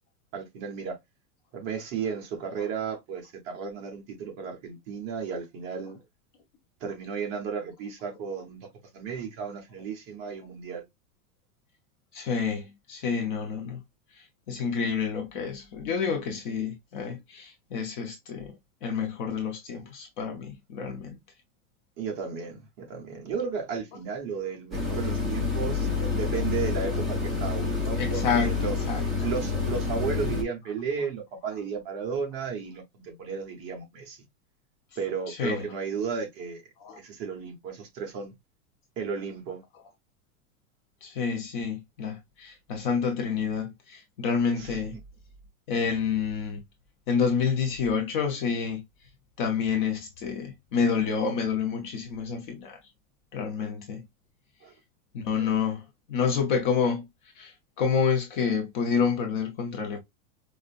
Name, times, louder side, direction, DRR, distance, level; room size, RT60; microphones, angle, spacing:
voice 1, 0.3-1.0 1.5-6.0 6.8-8.7 8.9-10.8 22.0-28.8 29.2-34.2 35.0-36.6 37.0-38.3 39.0-39.6 44.6-44.8 53.6-53.7 54.6-54.7 55.4-55.5, right 6 dB, 25° right, 0.9 m, -34 dB
voice 2, 12.1-13.8 14.1-21.2 28.0-29.0 35.3-35.6 36.8-37.0 41.0-45.0 45.7-46.6 47.1-48.8 49.4-52.8 53.3-54.0 55.1-57.1 57.4-60.0, left 6 dB, 35° left, 0.6 m, -29 dB
sound 1, 24.7-30.4, left 4 dB, ahead, 0.8 m, -28 dB
5.2 x 2.1 x 2.4 m
supercardioid pair, 175°, 44 cm